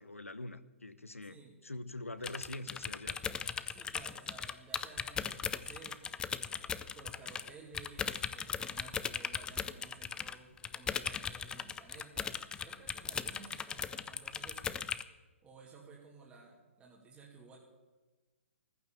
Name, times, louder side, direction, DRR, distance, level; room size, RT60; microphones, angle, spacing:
voice 1, 0.0-3.2, left 2 dB, 90° left, 15 dB, 0.9 m, -44 dB
voice 2, 1.2-1.6 3.7-14.7 15.4-17.6, right 4 dB, 15° right, -3 dB, 2.4 m, -55 dB
sound 1, 2.2-7.5 7.7-15.0, left 7 dB, 10° left, 0.5 m, -38 dB
15.0 x 10.5 x 7.4 m, 1.2 s
figure-of-eight pair, 125°, 7 cm